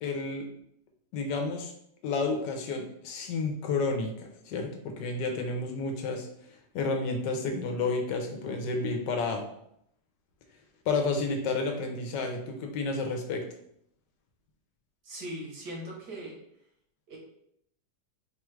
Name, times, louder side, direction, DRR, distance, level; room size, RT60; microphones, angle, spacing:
voice 1, 0.0-0.5 1.1-1.7 2.0-6.3 6.7-9.5 10.9-13.4, left 3 dB, 80° left, 3 dB, 1.2 m, -31 dB
voice 2, 15.0-16.4 17.1-17.2, right 1 dB, 70° right, -1 dB, 1.5 m, -39 dB
4.6 x 2.3 x 3.1 m, 0.73 s
omnidirectional pair, 1.9 m